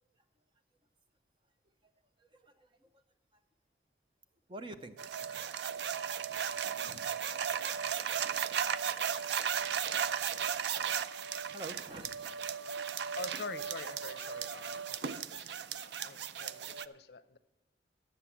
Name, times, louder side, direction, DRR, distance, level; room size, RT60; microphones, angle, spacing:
voice 1, 2.2-2.9 4.5-4.9 8.1-8.3 11.5-12.2 12.8-13.1, right 1 dB, 30° right, 8 dB, 0.8 m, -47 dB
sound 1, 5.0-16.9, right 8 dB, 80° right, 0.4 m, -36 dB
voice 2, 13.1-17.4, left 4 dB, 65° left, 13 dB, 0.6 m, -46 dB
11.5 x 7.5 x 7.2 m, 1.0 s
head